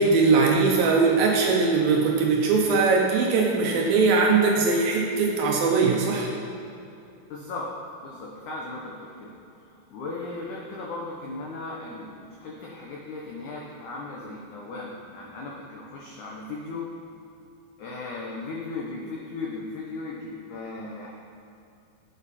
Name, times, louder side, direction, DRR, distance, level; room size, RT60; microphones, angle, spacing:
voice 1, 0.0-6.3, right 4 dB, 75° right, -1 dB, 2.3 m, -21 dB
voice 2, 7.3-7.7 8.0-9.3 9.9-16.8 17.8-21.1, left 3 dB, 85° left, -3 dB, 1.7 m, -36 dB
11.0 x 8.2 x 4.3 m, 2.7 s
omnidirectional pair, 5.0 m